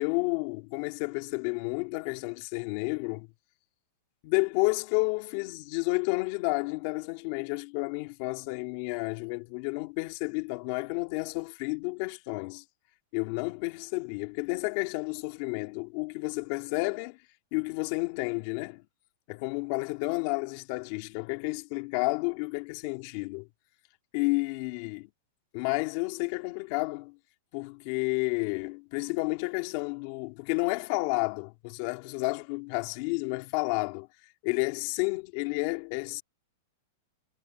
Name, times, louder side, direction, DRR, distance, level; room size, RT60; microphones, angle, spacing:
voice 1, 0.0-3.3 4.2-12.6 13.1-17.2 17.5-18.8 19.3-23.5 24.1-25.1 25.5-27.2 27.5-34.1 34.4-36.2, left 26 dB, 40° left, 2.5 m, -31 dB
supercardioid pair, 170°, 0 cm